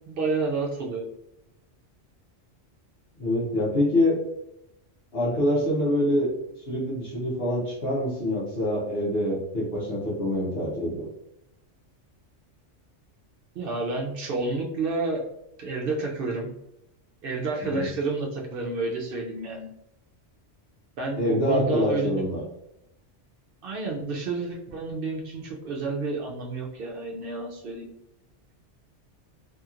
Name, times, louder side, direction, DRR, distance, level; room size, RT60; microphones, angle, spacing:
voice 1, 0.1-1.1 13.5-15.3 15.6-16.5 17.2-19.7 21.0-22.1 23.6-27.9, right 3 dB, 60° right, -1 dB, 0.7 m, -30 dB
voice 2, 3.2-4.2 5.1-6.3 6.6-11.1 17.6-17.9 21.2-22.4, left 1 dB, 55° left, -6 dB, 1.0 m, -25 dB
2.8 x 2.7 x 2.4 m, 0.85 s
omnidirectional pair, 1.2 m